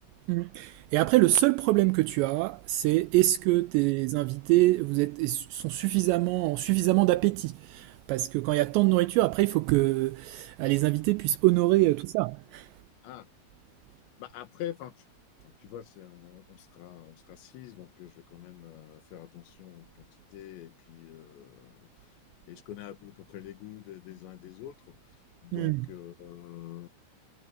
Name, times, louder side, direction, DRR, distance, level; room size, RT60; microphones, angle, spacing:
voice 1, 0.3-12.7 25.5-25.8, right 18 dB, 85° right, 2.5 m, -25 dB
voice 2, 14.2-15.1 15.4-22.2 22.5-26.9, left 12 dB, 70° left, 3.7 m, -45 dB
omnidirectional pair, 5.6 m